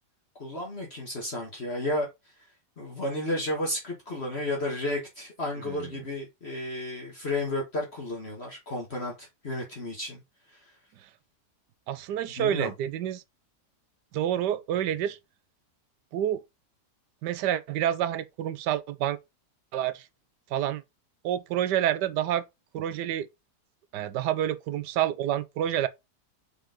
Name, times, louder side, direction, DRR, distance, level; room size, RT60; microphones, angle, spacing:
voice 1, 0.4-2.1 2.8-10.2 12.4-12.7, left 1 dB, 40° left, 1.7 m, -32 dB
voice 2, 11.9-13.2 14.1-15.2 16.1-16.4 17.2-19.2 19.7-20.0 20.5-20.8 21.2-22.4 22.7-23.3 23.9-25.9, right 11 dB, 90° right, 1.3 m, -28 dB
5.2 x 4.9 x 3.7 m
omnidirectional pair, 1.8 m